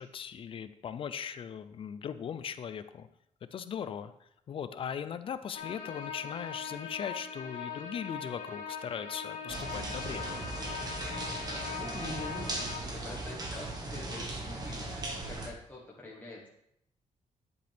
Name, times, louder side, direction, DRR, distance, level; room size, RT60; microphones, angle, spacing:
voice 1, 0.0-3.1 3.5-10.3, left 8 dB, 45° left, 12 dB, 0.5 m, -39 dB
sound 1, 5.5-12.8, left 6 dB, 80° left, 2.6 m, -41 dB
sound 2, 9.5-15.5, right 2 dB, 30° right, 1.3 m, -38 dB
voice 2, 11.3-16.5, left 2 dB, 15° left, -5 dB, 1.4 m, -45 dB
10.5 x 8.0 x 3.5 m, 0.76 s
cardioid pair, 165°, 13 cm